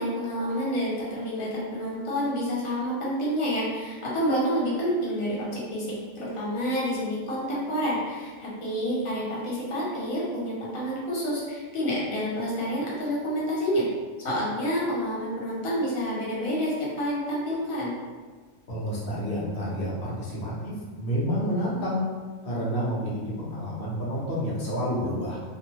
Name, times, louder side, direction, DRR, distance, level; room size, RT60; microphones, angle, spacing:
voice 1, 0.0-13.8 14.2-17.9, equal, 85° left, -6 dB, 1.3 m, -28 dB
voice 2, 18.7-22.0 22.4-25.4, equal, 50° left, -7 dB, 0.9 m, -29 dB
2.6 x 2.0 x 3.0 m, 1.4 s
omnidirectional pair, 1.4 m